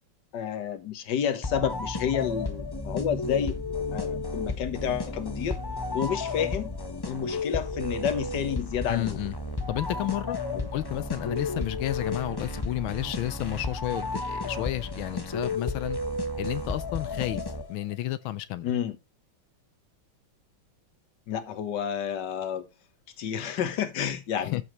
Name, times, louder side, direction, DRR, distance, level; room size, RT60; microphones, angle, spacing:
voice 1, 0.3-3.6 3.9-5.6 5.9-6.7 7.1-9.2 10.5-10.7 18.6-19.0 21.3-22.7 23.2-24.6, left 8 dB, 60° left, 1.8 m, -30 dB
sound 1, 1.4-17.9, left 2 dB, 35° left, 0.3 m, -33 dB
voice 2, 8.9-9.3 9.7-10.4 10.7-16.0 16.4-17.4 17.7-18.7 24.4-24.6, left 15 dB, 85° left, 1.5 m, -31 dB
14.0 x 5.7 x 3.1 m
omnidirectional pair, 2.2 m